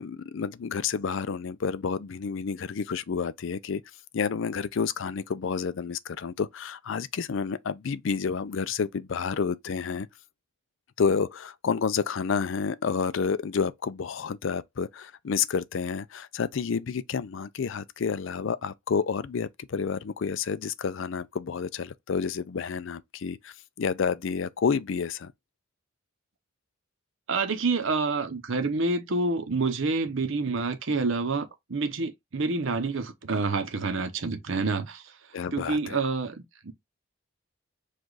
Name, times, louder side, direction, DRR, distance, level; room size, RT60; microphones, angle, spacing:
voice 1, 0.0-3.8 4.1-10.1 11.0-25.3 35.3-36.0, left 6 dB, 60° left, 0.4 m, -29 dB
voice 2, 27.3-35.0 35.5-36.7, right 3 dB, 65° right, 0.8 m, -28 dB
4.9 x 2.4 x 3.9 m
head